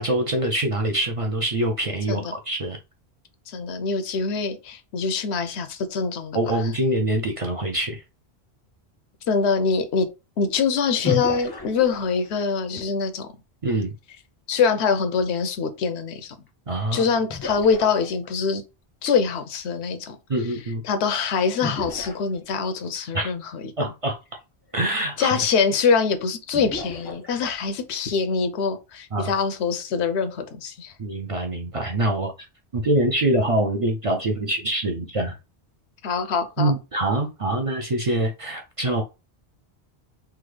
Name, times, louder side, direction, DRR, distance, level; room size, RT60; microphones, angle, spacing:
voice 1, 0.0-2.8 6.3-8.0 13.6-13.9 16.7-17.1 20.3-20.8 23.1-23.3 23.8-24.2 24.7-25.4 29.1-29.3 31.0-32.3 32.7-35.4 36.6-39.0, right 1 dB, 45° right, 0.4 m, -24 dB
voice 2, 3.5-6.4 9.3-10.1 10.4-13.3 14.5-16.3 16.9-18.6 19.0-20.2 20.8-23.5 23.8-23.9 25.2-30.9 36.0-36.7, left 5 dB, 85° left, 0.9 m, -24 dB
sound 1, 11.0-12.5 16.5-16.6 17.3-18.5 21.6-22.9 24.2-24.3 24.8-24.9 26.5-27.8, left 4 dB, 30° left, 0.5 m, -33 dB
3.5 x 2.0 x 3.1 m
omnidirectional pair, 1.1 m